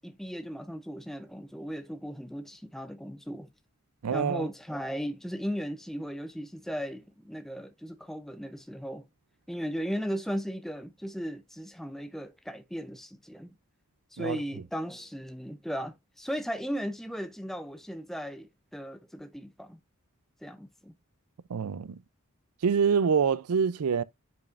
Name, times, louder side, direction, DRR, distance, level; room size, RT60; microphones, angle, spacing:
voice 1, 0.0-3.5 4.1-9.0 9.5-13.5 14.1-19.8 20.4-20.9, equal, ahead, 0.5 m, -36 dB
voice 2, 4.0-4.5 14.2-14.4 21.5-22.0 22.6-24.0, right 6 dB, 85° right, 0.5 m, -26 dB
9.4 x 5.3 x 2.5 m
head